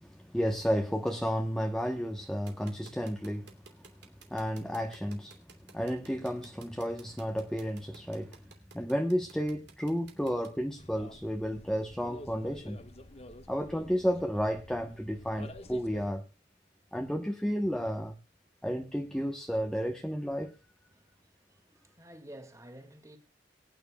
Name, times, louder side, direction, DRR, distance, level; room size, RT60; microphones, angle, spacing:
voice 1, 0.0-3.5 4.3-5.4 5.7-8.4 8.7-12.8 13.5-16.2 16.9-18.2 18.6-20.5, equal, 5° left, 1.0 m, -32 dB
sound 1, 2.5-10.5, right 5 dB, 70° right, 2.8 m, -54 dB
sound 2, 10.8-16.1, left 1 dB, 35° left, 1.4 m, -49 dB
voice 2, 20.9-23.2, right 1 dB, 15° right, 2.0 m, -51 dB
22.5 x 9.4 x 2.3 m
head